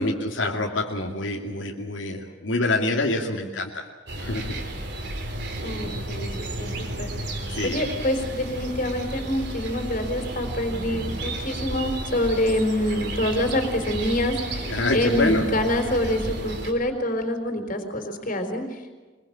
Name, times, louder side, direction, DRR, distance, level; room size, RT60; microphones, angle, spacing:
voice 1, 0.0-3.8 4.2-4.6 7.5-7.8 14.7-15.4, left 2 dB, 80° left, 0 dB, 2.6 m, -26 dB
sound 1, 4.1-16.7, right 1 dB, 60° right, 4.2 m, -32 dB
voice 2, 5.6-19.0, left 1 dB, 45° left, 6 dB, 4.3 m, -26 dB
24.0 x 22.0 x 8.7 m, 1.3 s
head